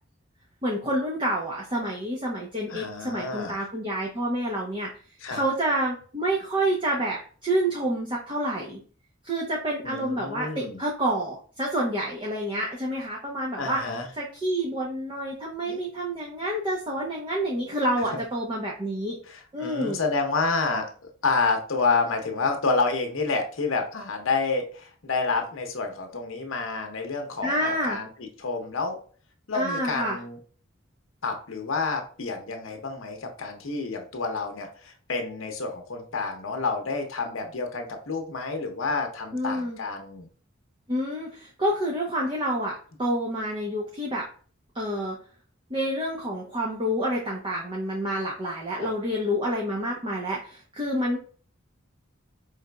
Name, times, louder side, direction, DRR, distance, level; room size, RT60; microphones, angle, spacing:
voice 1, 0.6-4.9 5.3-8.8 9.2-13.8 14.1-19.2 19.5-20.0 27.4-28.0 29.5-30.2 39.3-39.8 40.9-44.3 44.7-45.2 45.7-51.2, right 1 dB, 25° right, -3 dB, 0.7 m, -28 dB
voice 2, 2.7-3.6 5.2-5.4 9.8-10.8 13.6-14.1 15.7-15.8 19.3-29.0 29.5-30.4 31.2-40.3 48.8-48.9, left 4 dB, 75° left, 4 dB, 0.8 m, -29 dB
4.9 x 3.3 x 2.2 m, 0.42 s
head